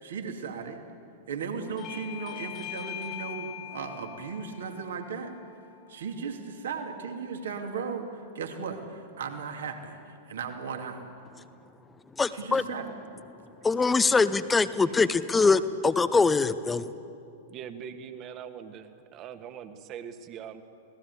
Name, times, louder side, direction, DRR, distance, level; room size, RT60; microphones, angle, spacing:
voice 1, 0.0-0.8 1.3-5.3 5.9-11.0 12.3-12.9, right 5 dB, 65° right, 4 dB, 2.6 m, -36 dB
Bell / Doorbell, 1.8-6.9, left 13 dB, 35° left, 1.1 m, -43 dB
voice 2, 12.2-12.6 13.6-16.9, left 4 dB, 10° left, 13 dB, 0.8 m, -23 dB
voice 3, 14.8-15.2 17.5-20.6, right 8 dB, 35° right, 9 dB, 1.7 m, -42 dB
26.5 x 18.5 x 8.4 m, 2.6 s
figure-of-eight pair, 100°, 0 cm